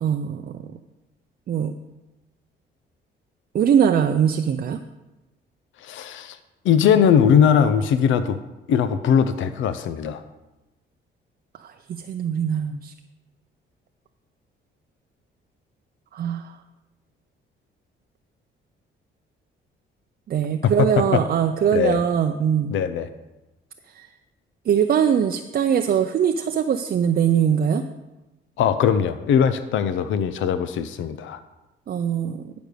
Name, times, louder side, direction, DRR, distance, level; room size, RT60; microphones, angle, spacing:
voice 1, 0.0-0.7 1.5-1.7 3.5-4.8 11.6-11.7 12.1-12.9 16.1-16.5 20.3-22.7 23.9-24.1 24.7-27.8 31.9-32.5, right 8 dB, 50° right, 7 dB, 0.5 m, -21 dB
voice 2, 5.8-6.4 6.6-8.4 8.7-10.2 20.6-21.2 21.7-22.0 22.7-23.1 28.6-31.4, left 8 dB, 75° left, 11 dB, 0.6 m, -20 dB
10.5 x 5.1 x 6.7 m, 1.0 s
cardioid pair, 90°, 20 cm